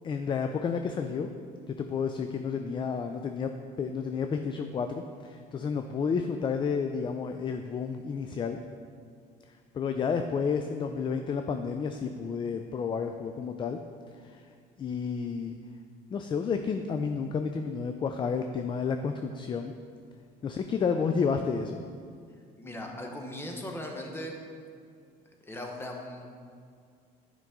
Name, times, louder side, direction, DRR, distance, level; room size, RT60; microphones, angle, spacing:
voice 1, 0.0-1.3 1.7-3.5 3.8-8.6 9.7-13.8 14.2-14.4 14.8-15.5 16.1-19.7 20.4-21.8, left 5 dB, 30° left, 6 dB, 0.3 m, -31 dB
voice 2, 22.6-24.4 25.4-26.2, left 1 dB, 15° left, 2 dB, 1.0 m, -38 dB
9.2 x 5.2 x 3.6 m, 2.2 s
cardioid pair, 110°, 17 cm